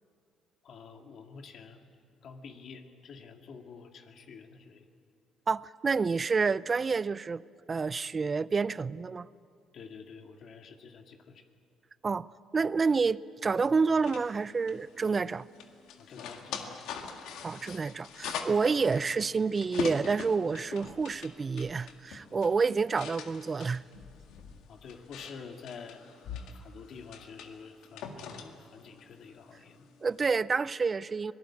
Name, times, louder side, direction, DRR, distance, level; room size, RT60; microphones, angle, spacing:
voice 1, 0.6-1.9 2.2-4.8 9.7-11.4 16.0-16.9 24.7-26.0 26.5-29.9, left 5 dB, 60° left, 2.1 m, -48 dB
voice 2, 5.5-7.4 7.7-9.3 12.0-15.5 17.4-23.8 30.0-31.3, right 4 dB, 35° right, 0.5 m, -29 dB
sound 1, 13.9-30.3, left 6 dB, 80° left, 1.9 m, -43 dB
24.5 x 18.5 x 8.6 m
cardioid pair, 85°, 0 cm